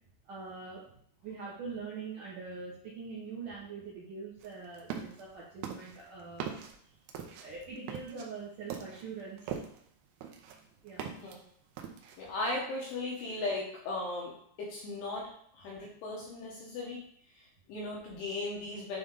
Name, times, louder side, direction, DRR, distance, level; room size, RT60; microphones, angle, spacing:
voice 1, 0.2-6.6 7.4-9.6 10.8-11.1, right 4 dB, 65° right, -7 dB, 2.2 m, -43 dB
sound 1, 4.4-5.2 5.6-9.9 10.2-11.4 11.8-12.3, right 8 dB, 85° right, 2.2 m, -41 dB
voice 2, 12.2-17.1 17.3-19.0, left 2 dB, 70° left, -4 dB, 3.1 m, -37 dB
9.6 x 3.8 x 3.8 m, 0.65 s
omnidirectional pair, 5.3 m